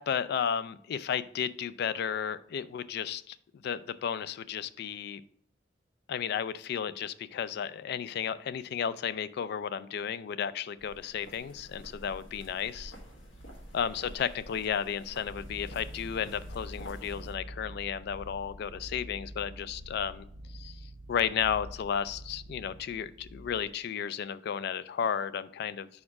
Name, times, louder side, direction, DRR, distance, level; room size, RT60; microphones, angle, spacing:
voice 1, 0.0-3.4 3.6-5.2 6.1-12.9 13.7-20.3 20.5-20.8 21.1-25.9, left 8 dB, 60° left, 15 dB, 0.3 m, -33 dB
sound 1, 10.8-17.4, equal, 85° left, 1.4 m, -49 dB
sound 2, 15.3-23.7, equal, 70° right, 0.9 m, -46 dB
4.8 x 4.3 x 5.7 m, 0.64 s
head